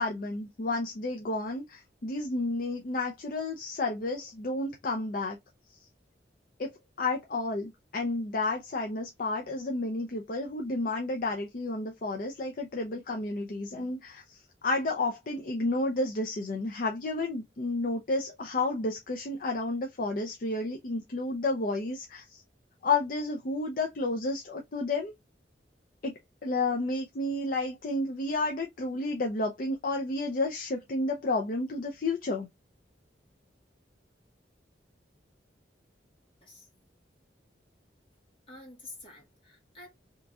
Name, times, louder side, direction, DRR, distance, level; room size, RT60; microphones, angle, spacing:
voice 1, 0.0-5.4 6.6-6.7 7.0-14.4 14.6-22.4 22.8-25.1 26.0-32.5, left 2 dB, 50° left, 0.5 m, -31 dB
voice 2, 38.5-39.9, left 2 dB, 30° left, 1.6 m, -48 dB
3.5 x 3.0 x 2.3 m
head